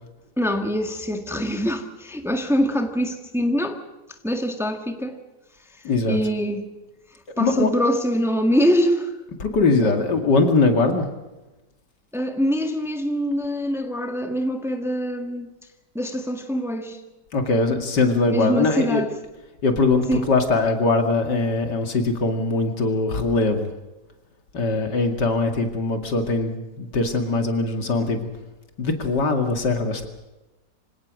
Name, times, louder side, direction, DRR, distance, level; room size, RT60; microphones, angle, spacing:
voice 1, 0.4-3.8 4.2-5.2 6.1-6.7 7.4-9.1 9.8-9.9 12.1-15.5 15.9-17.0 18.3-19.1 20.1-20.3, equal, ahead, 5 dB, 1.6 m, -24 dB
voice 2, 5.8-6.2 7.4-7.7 9.4-11.1 17.3-19.0 19.6-23.7 24.5-28.3 28.8-30.1, left 3 dB, 80° left, 5 dB, 2.9 m, -21 dB
26.0 x 17.5 x 6.4 m, 1.1 s
omnidirectional pair, 1.8 m